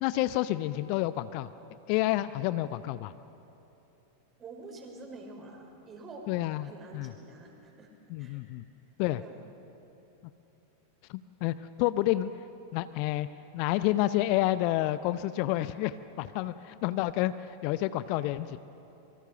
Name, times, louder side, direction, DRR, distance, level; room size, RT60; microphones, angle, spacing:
voice 1, 0.0-1.5 1.9-3.1 6.3-7.1 8.1-8.6 9.0-9.2 11.1-12.3 12.7-13.3 13.5-18.6, left 15 dB, 45° left, 14 dB, 0.6 m, -29 dB
voice 2, 4.4-6.2 6.6-7.9 8.2-8.4 9.2-9.4, right 3 dB, 25° right, 2 dB, 5.4 m, -47 dB
27.0 x 23.5 x 6.8 m, 3.0 s
figure-of-eight pair, 90°, 0 cm